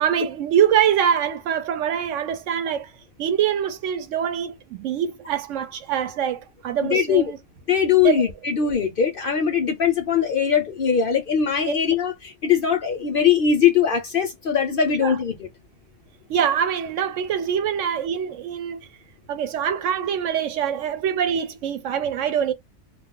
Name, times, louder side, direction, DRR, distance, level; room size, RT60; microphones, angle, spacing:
voice 1, 0.0-2.9 3.2-7.4 8.0-8.2 11.7-11.8 15.0-15.2 16.3-18.9 19.3-22.5, right 8 dB, 75° right, 0.9 m, -24 dB
voice 2, 6.8-7.3 7.7-15.5, left 7 dB, 60° left, 0.6 m, -21 dB
2.3 x 2.0 x 3.6 m
omnidirectional pair, 1.3 m